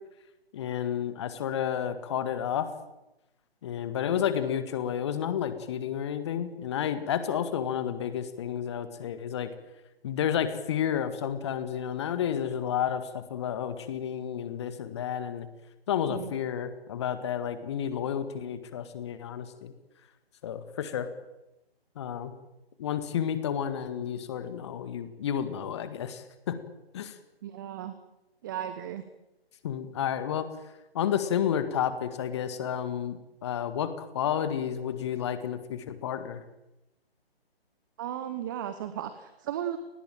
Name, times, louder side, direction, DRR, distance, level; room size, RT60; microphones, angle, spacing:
voice 1, 0.5-2.7 3.6-9.5 10.0-15.5 15.9-19.7 20.4-21.1 22.0-22.3 22.8-26.6 26.9-27.2 29.6-30.5 30.9-36.4, left 9 dB, 25° left, 11 dB, 1.9 m, -31 dB
voice 2, 27.4-27.9 28.4-29.0 38.0-39.8, right 10 dB, 20° right, 11 dB, 1.1 m, -35 dB
25.5 x 19.5 x 9.0 m, 0.95 s
figure-of-eight pair, 140°, 31 cm